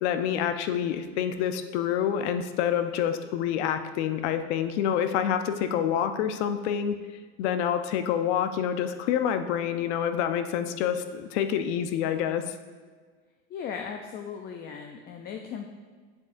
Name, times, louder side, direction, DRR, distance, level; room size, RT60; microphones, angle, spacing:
voice 1, 0.0-7.0 7.4-12.4, left 9 dB, 90° left, 9 dB, 0.7 m, -27 dB
voice 2, 13.5-15.7, left 7 dB, 30° left, 4 dB, 0.4 m, -37 dB
7.6 x 7.5 x 2.5 m, 1.5 s
cardioid pair, 145°, 33 cm